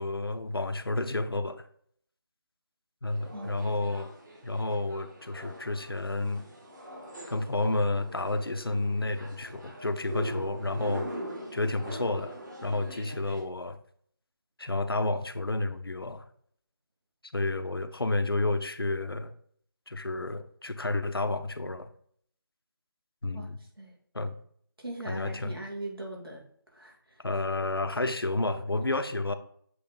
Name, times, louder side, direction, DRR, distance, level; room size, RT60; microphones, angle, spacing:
voice 1, 0.0-1.7 3.0-4.1 4.4-6.4 7.3-11.1 11.5-12.3 12.6-13.8 14.6-16.3 17.3-19.3 19.9-21.9 23.2-23.6 24.1-24.4 25.1-25.6 27.2-29.3, left 2 dB, 85° left, 10 dB, 0.7 m, -30 dB
sound 1, 3.0-13.4, right 1 dB, 50° right, 2.2 m, -43 dB
voice 2, 3.3-3.7 23.3-23.5 23.8-24.0 24.8-26.4 26.7-27.2, right 1 dB, 80° right, -1 dB, 2.5 m, -40 dB
7.7 x 3.2 x 3.8 m, 0.63 s
figure-of-eight pair, 160°, 12 cm